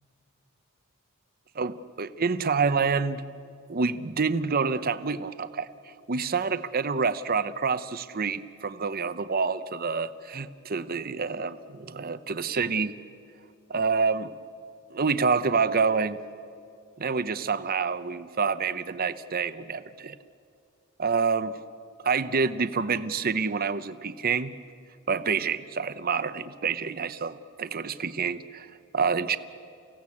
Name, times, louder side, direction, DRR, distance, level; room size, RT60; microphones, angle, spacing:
voice 1, 1.5-3.2 3.7-5.7 6.1-12.9 13.7-14.3 14.9-16.2 17.0-20.2 21.0-21.6 22.0-24.5 25.1-28.7 28.9-29.4, right 5 dB, 45° right, 13 dB, 0.8 m, -27 dB
29.5 x 16.5 x 8.5 m, 2.4 s
head